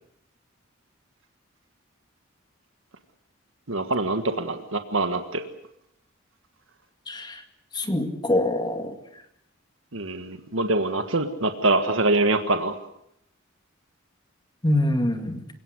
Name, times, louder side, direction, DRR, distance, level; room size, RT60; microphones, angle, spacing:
voice 1, 3.7-5.4 9.9-12.8, right 2 dB, 70° right, 8 dB, 1.6 m, -24 dB
voice 2, 7.1-7.4 7.7-9.0 14.6-15.4, left 1 dB, 20° left, 6 dB, 2.2 m, -24 dB
28.0 x 17.5 x 8.0 m, 0.78 s
head